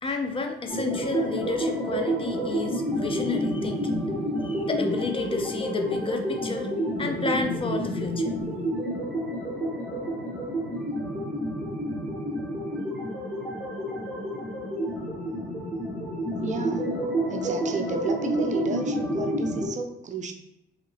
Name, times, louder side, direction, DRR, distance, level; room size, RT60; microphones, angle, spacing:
voice 1, 0.0-4.1 4.4-6.7 7.0-8.4, left 3 dB, 25° left, 5 dB, 0.4 m, -31 dB
sound 1, 0.7-19.7, equal, 5° left, 1.2 m, -29 dB
voice 2, 16.4-17.0 17.3-20.3, right 4 dB, 40° right, 5 dB, 0.4 m, -32 dB
3.0 x 2.8 x 2.7 m, 0.83 s
cardioid pair, 90°, 20 cm